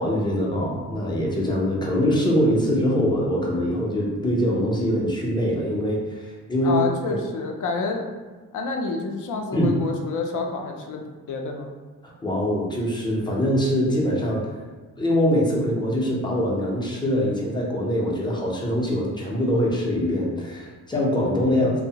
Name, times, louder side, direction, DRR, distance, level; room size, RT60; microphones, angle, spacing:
voice 1, 0.0-6.8 7.1-7.2 9.5-9.7 12.0-14.4 15.0-21.8, equal, 15° left, -3 dB, 0.5 m, -23 dB
voice 2, 6.6-8.0 8.5-11.7 21.5-21.8, left 4 dB, 65° left, 2 dB, 0.5 m, -28 dB
2.7 x 2.0 x 2.8 m, 1.3 s
cardioid pair, 130°, 33 cm